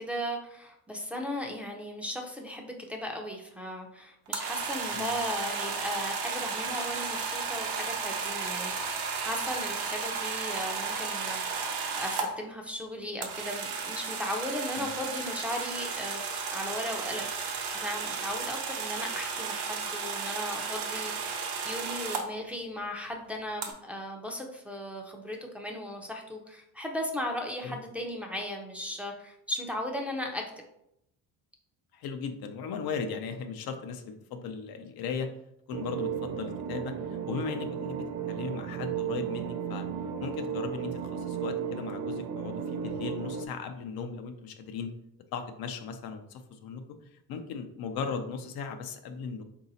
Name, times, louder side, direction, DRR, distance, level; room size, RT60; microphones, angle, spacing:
voice 1, 0.0-11.4 11.9-16.2 16.5-30.4, left 1 dB, 5° right, 0 dB, 0.6 m, -37 dB
sound 1, 4.3-12.3 13.2-22.2 23.6-23.7, right 5 dB, 85° right, 0.8 m, -34 dB
voice 2, 31.9-35.3 35.7-39.9 40.2-44.9 45.3-46.8 47.3-49.4, left 5 dB, 65° left, 6 dB, 0.6 m, -37 dB
sound 2, 35.7-43.5, right 8 dB, 65° right, 0.6 m, -34 dB
3.9 x 2.7 x 4.0 m, 0.78 s
cardioid pair, 110°, 38 cm